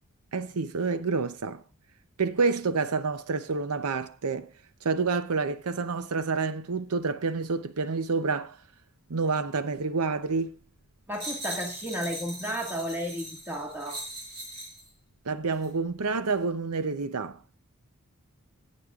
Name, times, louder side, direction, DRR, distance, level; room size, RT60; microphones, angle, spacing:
voice 1, 0.3-1.6 2.2-4.5 4.8-8.6 9.1-10.5 15.3-17.4, right 4 dB, 90° right, 0.7 m, -28 dB
voice 2, 11.1-14.0, equal, 10° right, 1.8 m, -33 dB
sound 1, 11.1-14.9 15.5-15.7, right 1 dB, 50° right, 4.1 m, -40 dB
17.5 x 7.3 x 2.4 m
head